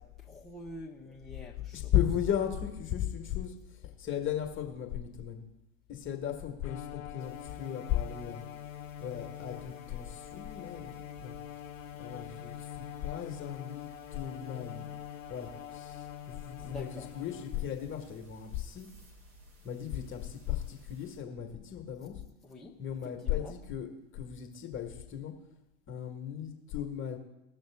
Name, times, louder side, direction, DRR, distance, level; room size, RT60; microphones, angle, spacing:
voice 1, 0.0-1.9 16.6-17.1 22.4-22.8 23.0-23.5, left 1 dB, ahead, -4 dB, 1.2 m, -47 dB
voice 2, 1.7-5.4 5.9-8.4 9.0-11.4 12.0-14.9 15.3-18.9 19.6-22.2 22.8-23.9 24.1-25.3 25.9-27.2, left 10 dB, 30° left, 4 dB, 1.6 m, -36 dB
Bowed string instrument, 6.6-17.8, left 11 dB, 85° left, 0.5 m, -45 dB
sound 1, 7.2-21.2, equal, 30° right, 2.2 m, -57 dB
17.5 x 6.4 x 3.5 m, 0.94 s
figure-of-eight pair, 85°, 40 cm